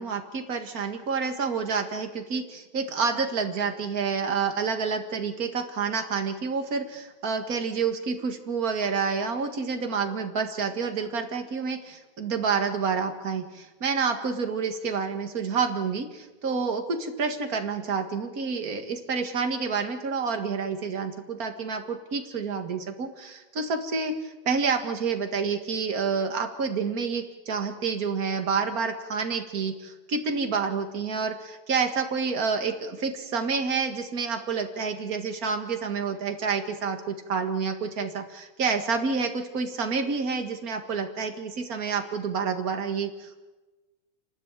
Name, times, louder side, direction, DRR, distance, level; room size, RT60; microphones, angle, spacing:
voice 1, 0.0-43.4, right 5 dB, 45° right, 5 dB, 2.2 m, -28 dB
28.0 x 12.5 x 9.1 m, 1.2 s
omnidirectional pair, 2.2 m